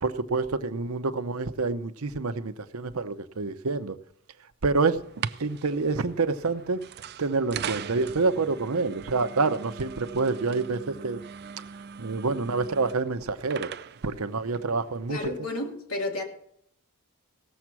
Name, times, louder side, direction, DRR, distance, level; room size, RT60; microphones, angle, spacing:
voice 1, 0.0-4.0 4.6-6.8 7.2-11.2 12.0-13.7 14.0-15.2, right 3 dB, 75° right, 0.8 m, -27 dB
sound 1, 5.0-15.3, right 7 dB, 50° right, 0.5 m, -40 dB
voice 2, 15.1-16.2, left 2 dB, 80° left, 2.6 m, -32 dB
17.5 x 7.2 x 6.0 m
head